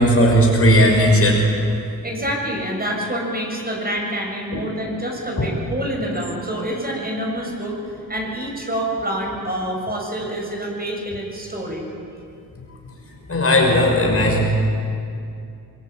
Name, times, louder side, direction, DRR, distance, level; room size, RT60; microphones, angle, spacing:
voice 1, 0.0-1.5 4.5-4.6 5.4-5.5 13.3-14.4, equal, 40° left, 0 dB, 6.2 m, -16 dB
voice 2, 2.0-11.9, right 1 dB, 25° right, 0 dB, 7.1 m, -27 dB
25.5 x 21.0 x 8.8 m, 2.5 s
cardioid pair, 75°, 36 cm